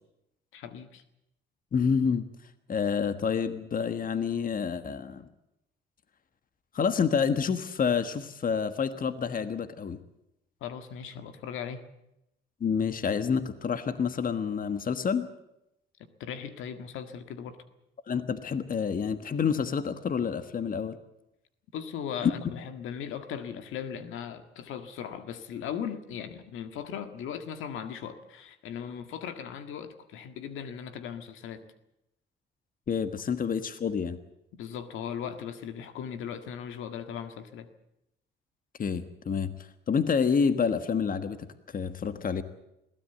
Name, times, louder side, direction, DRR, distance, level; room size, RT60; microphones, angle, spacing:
voice 1, 0.5-1.0 10.6-11.8 16.2-17.6 21.7-31.6 34.5-37.7, left 8 dB, 85° left, 9 dB, 1.7 m, -38 dB
voice 2, 1.7-2.3 2.7-5.3 6.7-10.0 12.6-15.3 18.1-21.0 22.2-22.3 32.9-34.2 38.8-39.5 39.9-41.5 41.7-42.4, left 6 dB, 45° left, 11 dB, 1.4 m, -28 dB
21.5 x 16.5 x 8.0 m, 0.84 s
cardioid pair, 90°, 20 cm